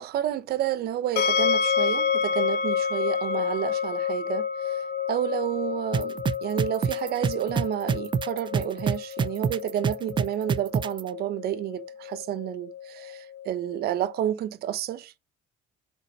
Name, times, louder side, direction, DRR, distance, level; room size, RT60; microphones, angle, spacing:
voice 1, 0.0-4.8 5.1-15.1, right 11 dB, 70° right, 0.9 m, -30 dB
sound 1, 1.2-14.1, left 7 dB, 70° left, 2.0 m, -29 dB
sound 2, 5.9-11.0, right 6 dB, 30° right, 0.4 m, -25 dB
7.0 x 4.2 x 5.3 m
cardioid pair, 110°, 17 cm